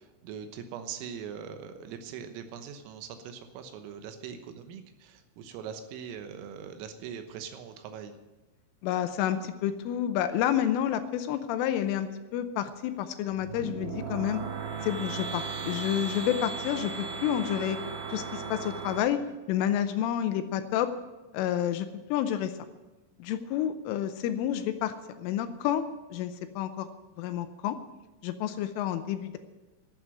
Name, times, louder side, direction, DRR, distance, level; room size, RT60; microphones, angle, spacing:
voice 1, 0.0-8.2, right 7 dB, 90° right, 7 dB, 3.7 m, -41 dB
voice 2, 8.8-14.4 14.8-17.8 18.1-19.2 19.5-20.9 21.3-22.5 23.2-26.9 27.2-27.8 28.2-29.4, left 10 dB, 85° left, 10 dB, 3.1 m, -29 dB
sound 1, 13.3-19.0, right 5 dB, 60° right, 2.8 m, -36 dB
12.5 x 7.8 x 9.5 m, 1.1 s
omnidirectional pair, 5.9 m